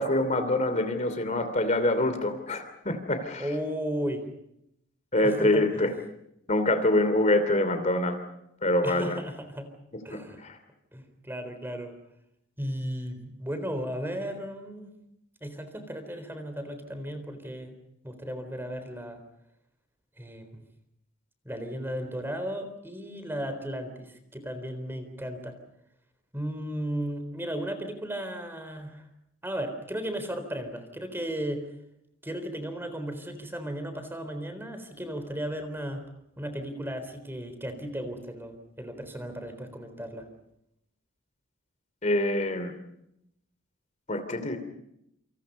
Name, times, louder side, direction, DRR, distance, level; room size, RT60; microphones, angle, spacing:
voice 1, 0.0-3.5 5.1-5.9 6.5-8.2 8.6-9.2 10.1-10.6 42.0-42.7 44.1-44.6, left 1 dB, 35° left, 9 dB, 2.8 m, -25 dB
voice 2, 3.4-4.2 5.2-5.9 8.8-9.7 10.0-10.4 10.9-12.0 12.6-14.9 15.4-17.7 18.0-19.2 20.2-20.6 21.4-25.6 26.3-29.1 29.4-31.7 32.2-36.0 36.4-40.3, equal, 10° right, 8 dB, 3.9 m, -35 dB
28.5 x 27.0 x 5.4 m, 0.78 s
head